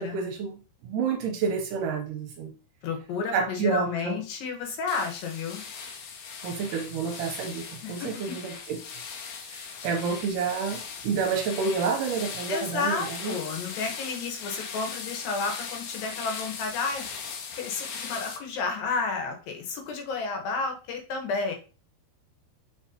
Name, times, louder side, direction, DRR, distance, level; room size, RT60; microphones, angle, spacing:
voice 1, 0.0-2.5 3.3-4.2 6.4-8.8 9.4-13.4, right 5 dB, 75° right, 3 dB, 2.1 m, -29 dB
voice 2, 2.8-5.6 7.8-8.1 12.5-17.1 17.6-21.6, left 4 dB, 70° left, 3 dB, 2.8 m, -31 dB
sound 1, 4.9-18.4, left 6 dB, 90° left, 2.9 m, -39 dB
7.6 x 4.6 x 2.8 m, 0.35 s
omnidirectional pair, 4.3 m